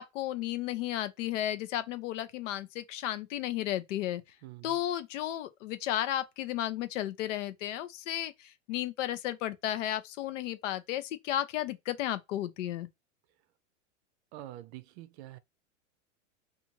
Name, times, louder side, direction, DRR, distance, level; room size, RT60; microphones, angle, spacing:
voice 1, 0.0-4.2 4.6-12.9, left 13 dB, 75° left, 0.6 m, -33 dB
voice 2, 4.4-4.8 14.3-15.4, right 14 dB, 60° right, 0.5 m, -46 dB
2.6 x 2.4 x 2.9 m
supercardioid pair, 125°, 38 cm